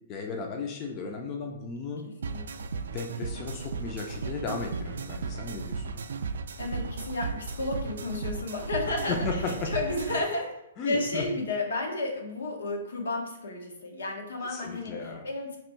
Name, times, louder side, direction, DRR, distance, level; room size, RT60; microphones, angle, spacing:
voice 1, 0.1-2.0 2.9-6.0 9.1-9.7 10.8-11.3 14.4-15.3, left 4 dB, 20° left, 2 dB, 0.3 m, -35 dB
sound 1, 2.2-10.2, right 4 dB, 80° right, 0.3 m, -35 dB
voice 2, 2.3-2.7 6.6-9.2 9.4-10.5 10.8-15.6, left 2 dB, 85° left, 2 dB, 0.9 m, -32 dB
3.0 x 2.6 x 4.4 m, 0.86 s
hypercardioid pair, 175°, 0 cm